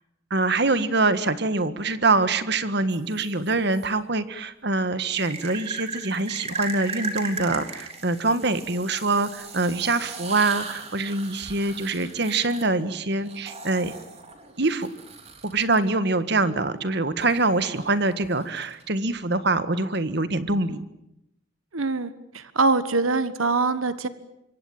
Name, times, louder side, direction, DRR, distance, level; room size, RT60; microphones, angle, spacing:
voice 1, 0.3-13.9 14.6-14.9 15.4-20.8, right 3 dB, 55° right, 12 dB, 1.7 m, -24 dB
sound 1, 2.9-3.8 5.1-15.8 17.2-19.0, right 4 dB, 30° right, 3.5 m, -38 dB
voice 2, 21.7-24.1, right 3 dB, 90° right, 13 dB, 1.4 m, -23 dB
26.0 x 23.5 x 8.9 m, 0.82 s
head